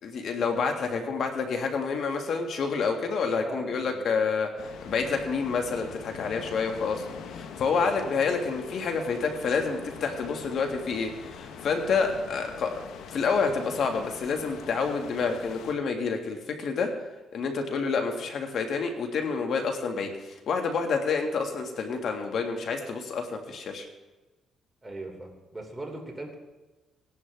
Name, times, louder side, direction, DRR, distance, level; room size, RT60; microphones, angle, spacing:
voice 1, 0.0-12.7 13.1-16.9 17.3-23.9, left 5 dB, 65° left, 4 dB, 1.9 m, -28 dB
voice 2, 3.3-4.2 7.7-7.9 24.8-26.4, right 2 dB, 15° right, 1 dB, 3.0 m, -40 dB
sound 1, 4.6-15.7, left 6 dB, 80° left, 0.9 m, -43 dB
17.0 x 11.0 x 3.5 m, 1.2 s
cardioid pair, 90°, 0 cm